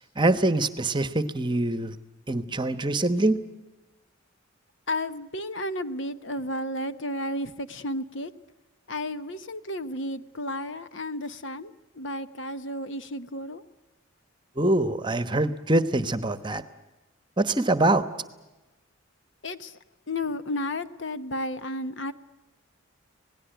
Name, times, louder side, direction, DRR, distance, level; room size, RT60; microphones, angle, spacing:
voice 1, 0.2-2.0 2.3-3.4 14.6-16.6 17.4-18.0, right 2 dB, 20° right, 12 dB, 1.1 m, -24 dB
voice 2, 4.9-8.3 8.9-13.6 19.4-19.8 20.1-22.1, left 1 dB, 60° left, 11 dB, 1.1 m, -32 dB
26.5 x 18.5 x 9.2 m, 1.1 s
head